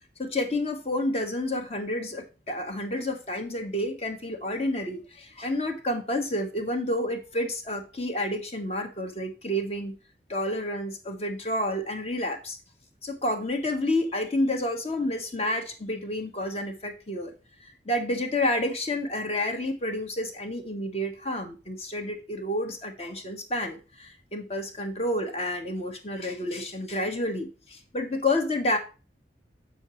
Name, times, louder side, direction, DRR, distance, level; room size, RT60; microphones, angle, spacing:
voice 1, 0.2-9.9 10.3-12.6 13.0-17.3 17.8-28.8, left 1 dB, 35° left, 5 dB, 1.4 m, -29 dB
8.0 x 6.3 x 3.1 m, 0.32 s
head